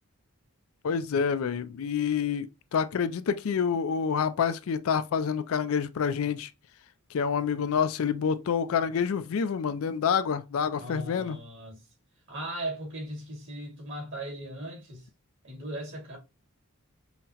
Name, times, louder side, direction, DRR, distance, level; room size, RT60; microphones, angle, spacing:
voice 1, 0.8-6.5 7.1-11.4, left 6 dB, 70° left, 0.4 m, -27 dB
voice 2, 10.7-11.8 12.3-15.1 15.4-16.2, right 1 dB, 60° right, 2.0 m, -38 dB
5.6 x 2.1 x 2.8 m
head